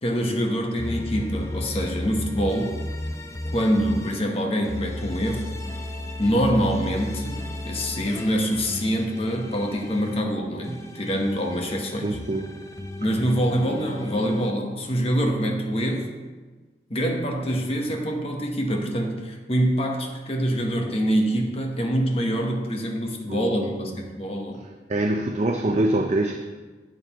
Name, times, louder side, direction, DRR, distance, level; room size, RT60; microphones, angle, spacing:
voice 1, 0.0-2.7 3.5-5.5 6.2-12.1 13.0-16.1 16.9-24.6, equal, 35° left, 2 dB, 1.1 m, -25 dB
sound 1, 0.8-4.2 4.6-10.2 10.6-14.5, left 1 dB, 15° left, 0.5 m, -34 dB
voice 2, 12.0-12.5 23.3-24.0 24.9-26.4, right 1 dB, 40° right, 3 dB, 0.5 m, -25 dB
11.0 x 7.7 x 3.0 m, 1.3 s
head